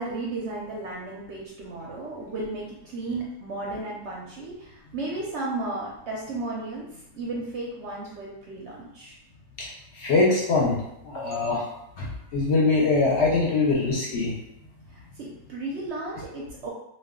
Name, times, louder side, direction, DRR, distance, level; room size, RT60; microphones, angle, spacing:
voice 1, 0.0-6.8 7.2-9.2 14.9-16.7, right 2 dB, 65° right, -3 dB, 0.7 m, -34 dB
voice 2, 9.9-14.4, left 3 dB, 60° left, -4 dB, 0.8 m, -23 dB
2.3 x 2.2 x 3.5 m, 0.80 s
omnidirectional pair, 1.5 m